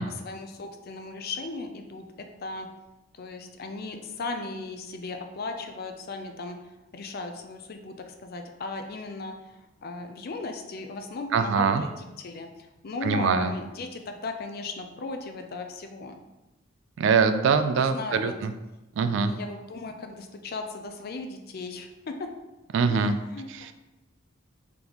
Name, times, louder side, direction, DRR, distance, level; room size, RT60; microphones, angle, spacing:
voice 1, 0.2-2.1 2.4-2.7 3.1-6.6 6.9-9.3 9.8-12.5 12.8-16.2 17.5-18.3 19.2-22.3 22.9-23.5, left 3 dB, 50° left, 5 dB, 0.4 m, -36 dB
voice 2, 11.3-11.8 13.0-13.5 17.0-18.5 19.0-19.3 22.7-23.2 23.5-23.7, right 5 dB, 65° right, 10 dB, 0.3 m, -23 dB
3.9 x 3.5 x 3.0 m, 1.0 s
head